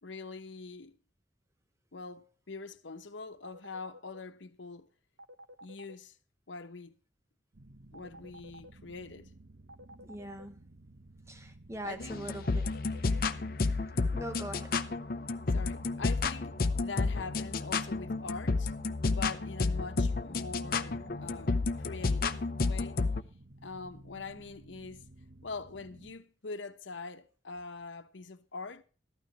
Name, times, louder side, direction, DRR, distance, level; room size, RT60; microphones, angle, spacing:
voice 1, 0.0-1.0 1.9-4.9 5.6-6.2 6.5-6.9 7.9-9.3 11.8-12.3 15.5-18.7 19.1-23.0 23.6-25.0 25.4-28.8, left 4 dB, 90° left, 1.0 m, -43 dB
sound 1, 3.4-4.2 5.2-5.9 7.9-8.7 9.7-10.4 12.4-13.2, equal, 90° right, 0.9 m, -50 dB
sound 2, 7.5-26.1, right 2 dB, 65° right, 1.3 m, -55 dB
voice 2, 10.0-10.6 11.3-12.7 14.1-14.8, right 1 dB, 15° right, 1.0 m, -42 dB
sound 3, 12.0-23.2, left 3 dB, 50° left, 0.6 m, -31 dB
14.0 x 11.5 x 3.0 m
head